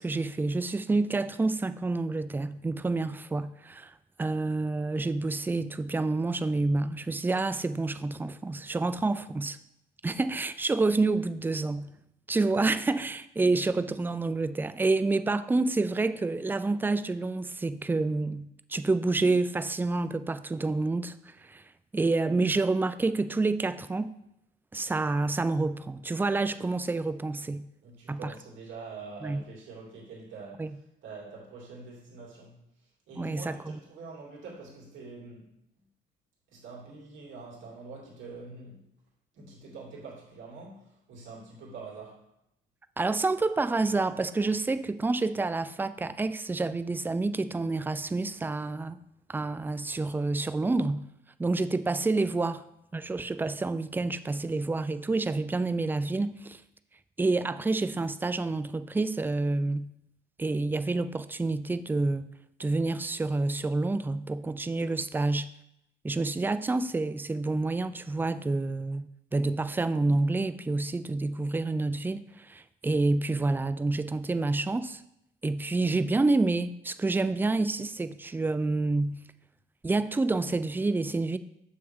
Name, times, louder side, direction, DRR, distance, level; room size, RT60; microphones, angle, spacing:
voice 1, 0.0-9.6 10.0-11.9 12.3-21.6 21.9-24.1 24.7-27.7 28.1-28.2 29.2-29.4 30.6-30.7 33.2-33.8 43.0-49.0 49.3-51.0 51.4-52.6 52.9-56.6 57.2-59.9 60.4-62.3 62.6-65.5 66.0-75.0 75.4-79.2 79.8-81.4, right 3 dB, 10° right, 0.3 m, -28 dB
voice 2, 27.8-35.5 36.5-38.9 39.3-42.2, right 4 dB, 75° right, 2.9 m, -45 dB
6.9 x 6.3 x 3.6 m
cardioid pair, 90°, 20 cm